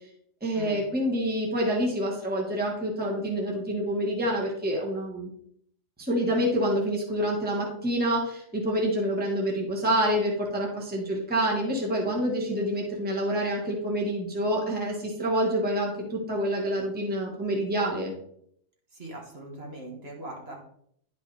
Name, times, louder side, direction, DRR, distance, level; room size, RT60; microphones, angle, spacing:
voice 1, 0.4-5.3 6.0-18.1, equal, 5° right, -1 dB, 1.3 m, -27 dB
voice 2, 18.9-20.6, right 2 dB, 50° right, -2 dB, 1.8 m, -40 dB
10.5 x 5.2 x 3.3 m, 0.69 s
omnidirectional pair, 1.4 m